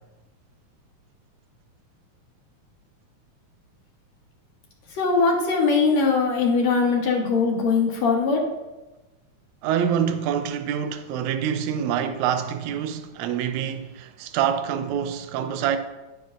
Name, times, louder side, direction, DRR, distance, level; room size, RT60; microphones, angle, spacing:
voice 1, 4.9-8.4, left 4 dB, 65° left, 2.3 m, -21 dB
voice 2, 9.6-15.8, right 9 dB, 80° right, 2.0 m, -26 dB
10.5 x 9.4 x 2.5 m
omnidirectional pair, 3.5 m